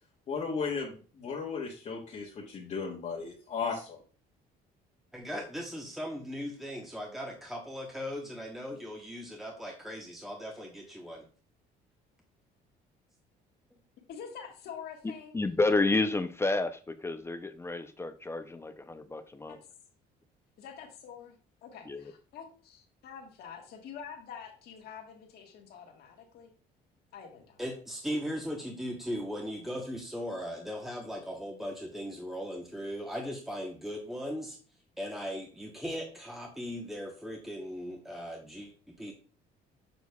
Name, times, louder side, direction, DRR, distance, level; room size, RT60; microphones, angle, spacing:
voice 1, 0.3-4.0, left 5 dB, 45° left, 1.3 m, -35 dB
voice 2, 5.1-11.2 27.6-34.6 35.0-39.1, equal, ahead, 1.0 m, -38 dB
voice 3, 14.1-15.4 19.5-19.6 20.6-26.5 27.1-27.6, left 7 dB, 70° left, 1.5 m, -46 dB
voice 4, 15.3-19.6 21.9-22.1, left 3 dB, 15° left, 0.5 m, -30 dB
7.1 x 6.1 x 2.3 m
cardioid pair, 110°, 17 cm